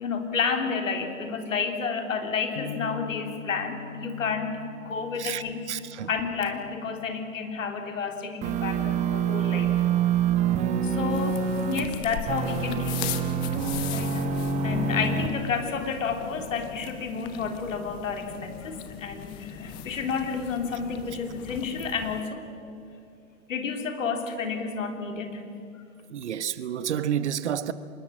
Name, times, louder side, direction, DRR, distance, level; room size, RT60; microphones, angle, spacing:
voice 1, 0.0-5.6 6.1-9.7 10.8-13.2 13.9-14.1 14.6-22.4 23.5-25.4, left 5 dB, 60° left, 5 dB, 3.5 m, -30 dB
sound 1, 2.6-8.6, left 8 dB, 35° left, 1.2 m, -43 dB
voice 2, 5.2-6.1 26.1-27.7, right 9 dB, 50° right, 15 dB, 1.1 m, -30 dB
sound 2, 8.4-11.9 12.3-15.3, right 6 dB, 15° right, 1.2 m, -26 dB
sound 3, 11.1-22.2, left 10 dB, 10° left, 0.5 m, -39 dB
25.5 x 21.0 x 9.0 m, 2.5 s
figure-of-eight pair, 120°, 43 cm